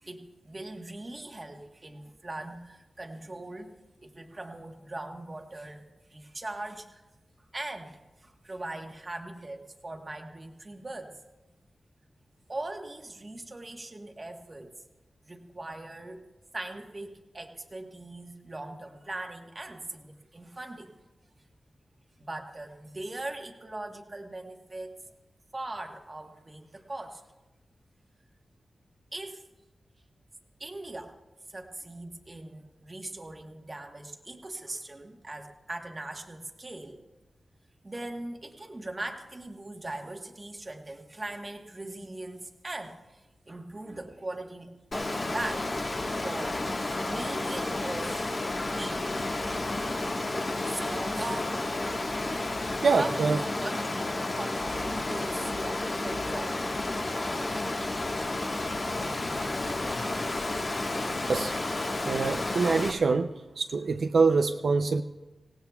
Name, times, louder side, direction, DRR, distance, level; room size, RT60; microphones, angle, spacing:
voice 1, 0.0-3.7 4.0-7.0 7.5-11.2 12.5-14.7 15.2-16.2 16.5-20.9 22.2-25.0 25.5-27.2 29.1-29.4 30.6-31.2 31.5-37.0 37.8-45.7 46.2-46.7 47.0-49.1 50.7-51.7 53.0-56.9, right 2 dB, 25° right, 3 dB, 1.2 m, -40 dB
Water, 44.9-62.9, left 2 dB, 35° left, 1.4 m, -31 dB
voice 2, 52.8-53.4 61.3-61.5 62.0-65.0, right 4 dB, 60° right, 6 dB, 0.5 m, -25 dB
25.5 x 18.0 x 2.3 m, 1.1 s
wide cardioid pair, 180°, 0 cm